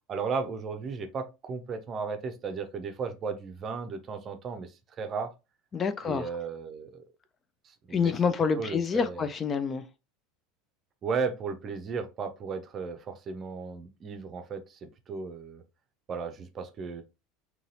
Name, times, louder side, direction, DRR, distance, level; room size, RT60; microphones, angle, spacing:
voice 1, 0.1-5.3 6.0-7.0 7.6-8.1 8.6-9.3 11.0-15.6 16.1-17.0, right 5 dB, 35° right, 0.6 m, -35 dB
voice 2, 5.7-6.3 7.9-9.8, left 6 dB, 25° left, 0.4 m, -27 dB
3.9 x 2.8 x 2.7 m
figure-of-eight pair, 75°, 0 cm